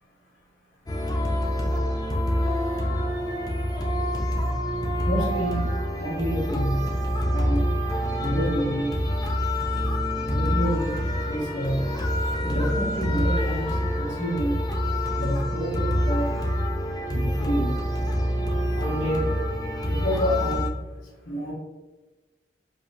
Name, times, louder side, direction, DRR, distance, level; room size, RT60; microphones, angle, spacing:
sound 1, 0.9-20.7, equal, 20° left, 0.5 m, -26 dB
voice 1, 5.0-5.6 6.0-6.8 7.3-7.7 8.2-8.9 10.1-11.8 12.4-14.6 15.1-16.3 17.1-17.8 18.8-19.3 19.9-20.7 21.2-21.5, equal, 80° left, -4 dB, 1.5 m, -28 dB
4.9 x 2.8 x 2.7 m, 1.2 s
head